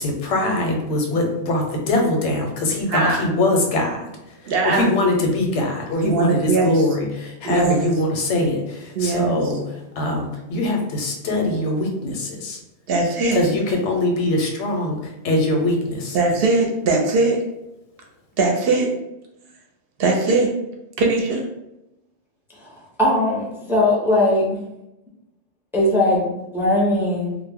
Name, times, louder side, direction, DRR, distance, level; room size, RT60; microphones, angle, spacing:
voice 1, 0.0-9.6 10.0-12.6 13.3-16.2, left 2 dB, 90° left, 1 dB, 0.9 m, -22 dB
voice 2, 2.9-3.2 4.4-4.9 6.0-6.7 7.4-7.9 8.9-9.3 12.9-13.4 16.1-17.4 18.4-18.9 20.0-20.5 21.0-21.4, right 3 dB, 65° right, 1 dB, 0.7 m, -20 dB
voice 3, 23.0-24.6 25.7-27.4, left 1 dB, 5° right, -4 dB, 0.3 m, -19 dB
2.2 x 2.0 x 3.4 m, 0.91 s
omnidirectional pair, 1.2 m